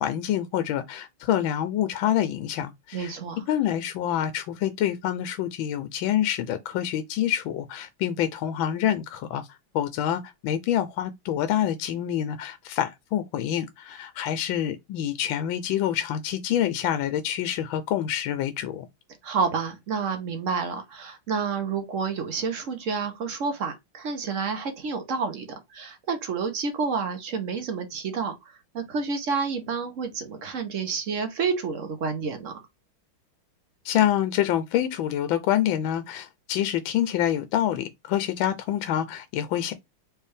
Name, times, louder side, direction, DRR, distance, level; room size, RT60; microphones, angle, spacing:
voice 1, 0.0-3.1 3.5-18.8 33.8-39.7, left 11 dB, 75° left, 1.3 m, -27 dB
voice 2, 2.9-3.4 19.2-32.6, right 5 dB, 55° right, 0.9 m, -29 dB
4.5 x 3.3 x 3.3 m
omnidirectional pair, 2.3 m